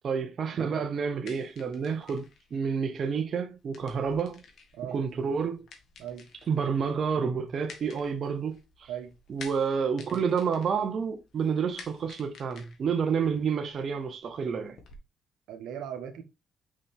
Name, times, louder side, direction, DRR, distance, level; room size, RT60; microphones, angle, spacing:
voice 1, 0.0-4.4 4.9-5.6 6.5-8.9 9.3-14.8, right 6 dB, 55° right, 0.9 m, -29 dB
sound 1, 1.0-15.0, left 5 dB, 65° left, 2.0 m, -52 dB
voice 2, 15.5-16.2, right 9 dB, 90° right, 1.2 m, -38 dB
5.6 x 5.1 x 3.6 m
cardioid pair, 90°, 0 cm